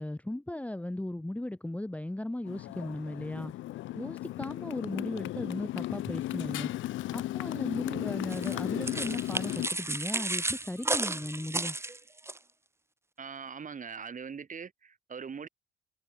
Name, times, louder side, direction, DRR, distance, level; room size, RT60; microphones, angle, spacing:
voice 1, 0.0-3.5 3.9-6.7 7.1-11.8, left 1 dB, 5° left, 1.2 m, -37 dB
Motorcycle, 2.5-9.7, left 15 dB, 75° left, 0.5 m, -35 dB
sound 1, 8.3-12.4, right 2 dB, 15° right, 1.6 m, -33 dB
voice 2, 13.2-15.5, right 6 dB, 40° right, 3.8 m, -41 dB
cardioid pair, 90°, 20 cm